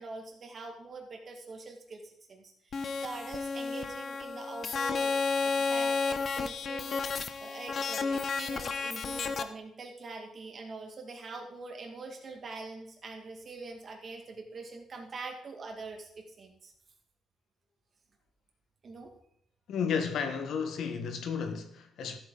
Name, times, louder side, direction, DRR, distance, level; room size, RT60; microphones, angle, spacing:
voice 1, 0.0-5.2 5.4-7.0 7.4-16.7 18.8-19.1, right 3 dB, 35° right, 2.2 m, -44 dB
sound 1, 2.7-9.4, left 4 dB, 40° left, 0.7 m, -32 dB
voice 2, 19.7-22.2, left 6 dB, 65° left, 1.6 m, -32 dB
14.0 x 8.4 x 4.0 m
cardioid pair, 165°, 0 cm